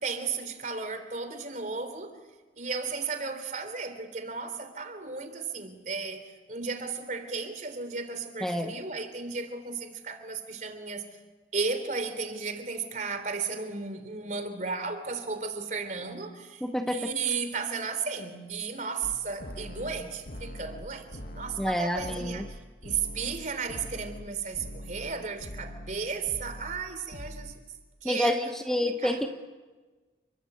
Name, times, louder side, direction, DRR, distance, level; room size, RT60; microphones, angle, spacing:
voice 1, 0.0-2.2 2.6-11.1 11.5-16.6 16.9-27.5 28.0-29.2, right 5 dB, 45° right, 9 dB, 3.5 m, -34 dB
voice 2, 16.6-17.0 21.6-22.4 28.0-29.3, left 1 dB, 5° left, 4 dB, 1.1 m, -28 dB
sound 1, 19.0-24.3 24.5-25.1 25.4-26.0 26.2-26.8 27.1-27.5, equal, 55° left, 1.9 m, -42 dB
30.0 x 22.5 x 8.2 m, 1.3 s
head